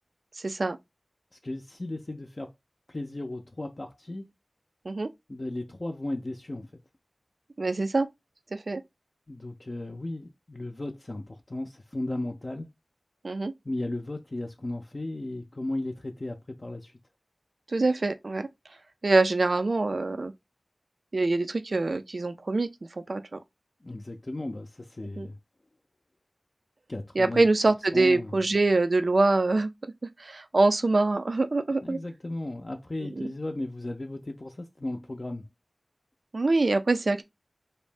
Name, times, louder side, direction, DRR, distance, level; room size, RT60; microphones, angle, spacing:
voice 1, 0.4-0.8 4.9-5.1 7.6-8.1 8.5-8.8 13.2-13.5 17.7-18.5 19.0-20.3 21.1-22.7 23.1-23.4 25.2-25.3 27.2-29.7 30.2-32.0 33.0-33.3 36.3-37.2, right 3 dB, 75° right, 0.3 m, -24 dB
voice 2, 1.4-2.5 2.9-4.3 5.3-6.7 9.3-12.7 13.6-16.9 23.8-25.4 26.9-27.4 27.9-28.3 31.8-35.4, left 1 dB, 50° left, 0.4 m, -35 dB
2.6 x 2.0 x 3.2 m
wide cardioid pair, 45°, 0 cm